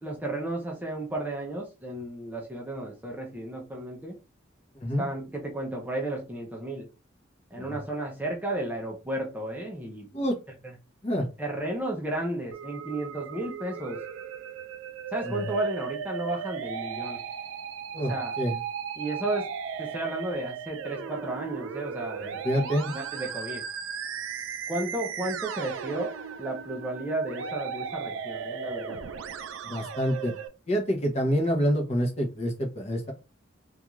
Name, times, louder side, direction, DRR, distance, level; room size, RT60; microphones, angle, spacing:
voice 1, 0.0-4.2 5.0-6.9 7.5-10.1 11.4-14.0 15.1-17.2 18.1-18.4 19.0-19.5 19.8-22.7 22.9-23.6 24.7-26.1 26.4-29.0, right 1 dB, 10° right, 0.4 m, -33 dB
Musical instrument, 12.5-30.5, right 7 dB, 80° right, 0.3 m, -36 dB
voice 2, 17.9-18.6 22.2-22.9 29.6-30.3 30.7-33.1, equal, 30° left, 0.7 m, -27 dB
2.4 x 2.3 x 3.0 m
head